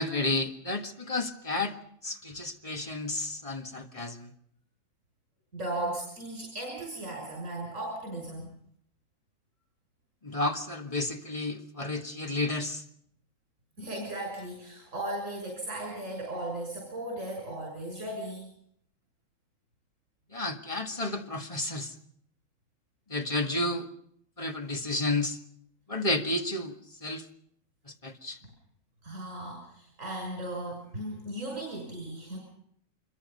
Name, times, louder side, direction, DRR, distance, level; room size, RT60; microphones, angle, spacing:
voice 1, 0.0-1.7 2.0-4.3 10.2-12.8 20.3-21.9 23.1-23.9 24.4-25.4 25.9-26.7 27.0-27.2 27.9-28.4, left 2 dB, 25° left, 4 dB, 2.0 m, -31 dB
voice 2, 5.5-8.5 13.8-18.5 29.0-32.4, right 1 dB, 85° right, -1 dB, 6.9 m, -36 dB
25.0 x 23.0 x 5.5 m, 0.68 s
omnidirectional pair, 1.3 m